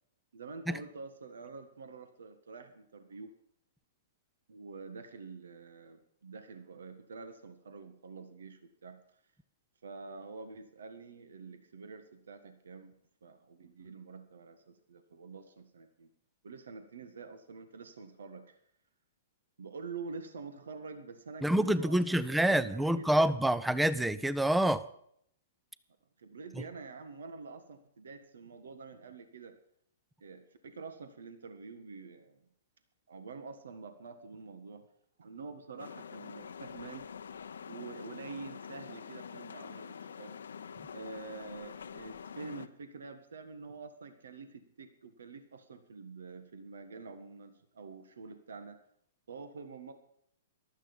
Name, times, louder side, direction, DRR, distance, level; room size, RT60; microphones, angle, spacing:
voice 1, 0.3-3.3 4.5-9.0 9.8-12.9 13.2-16.1 16.4-18.6 19.6-23.3 26.2-29.5 30.2-32.4 33.1-34.8 35.2-37.1 37.7-40.3 40.9-48.8 49.3-49.9, right 4 dB, 75° right, 9 dB, 1.6 m, -47 dB
voice 2, 21.4-24.9, right 1 dB, 5° right, 17 dB, 0.6 m, -27 dB
sound 1, 35.8-42.7, left 7 dB, 80° left, 0.8 m, -46 dB
15.0 x 12.0 x 5.4 m, 0.70 s
hypercardioid pair, 125°, 0 cm